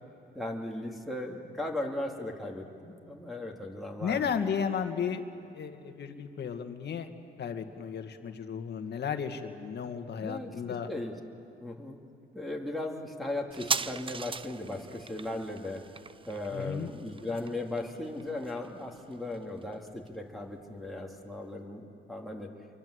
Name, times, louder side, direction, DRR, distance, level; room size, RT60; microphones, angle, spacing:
voice 1, 0.3-4.2 10.2-11.1 11.6-12.0 12.3-15.8 16.2-22.5, left 1 dB, ahead, -2 dB, 2.9 m, -37 dB
voice 2, 4.0-5.2 5.5-7.1 7.4-10.9 16.5-16.9, left 7 dB, 60° left, 7 dB, 2.0 m, -34 dB
sound 1, 13.5-20.6 20.9-21.0, right 5 dB, 25° right, 0.6 m, -39 dB
28.0 x 23.5 x 8.2 m, 2.7 s
cardioid pair, 90°, 20 cm